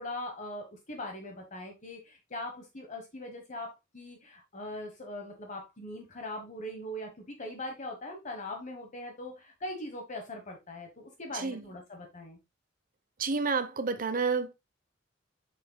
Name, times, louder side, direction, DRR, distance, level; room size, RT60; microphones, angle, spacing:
voice 1, 0.0-12.4, left 1 dB, 40° left, 1.2 m, -41 dB
voice 2, 11.3-11.6 13.2-14.5, right 4 dB, 45° right, 0.8 m, -30 dB
7.3 x 6.2 x 2.3 m
head